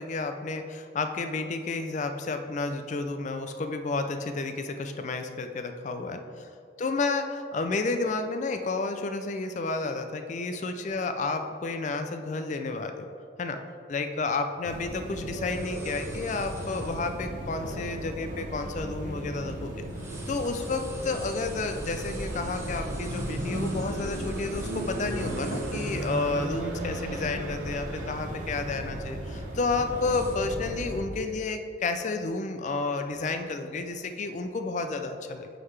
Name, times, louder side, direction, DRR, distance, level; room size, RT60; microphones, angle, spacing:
voice 1, 0.0-6.5 6.8-13.1 13.4-13.6 13.9-19.8 20.3-35.5, left 3 dB, 40° left, 7 dB, 0.3 m, -31 dB
sound 1, 14.6-31.0, right 1 dB, 45° right, 1.0 m, -35 dB
sound 2, 15.5-17.2 17.8-17.9 18.5-19.5 19.8-26.4 26.8-26.9 27.3-27.7 28.1-28.4 29.0-30.4, right 2 dB, 15° right, 0.7 m, -48 dB
sound 3, 21.4-30.1, right 5 dB, 85° right, 0.4 m, -46 dB
9.5 x 3.9 x 3.2 m, 2.5 s
head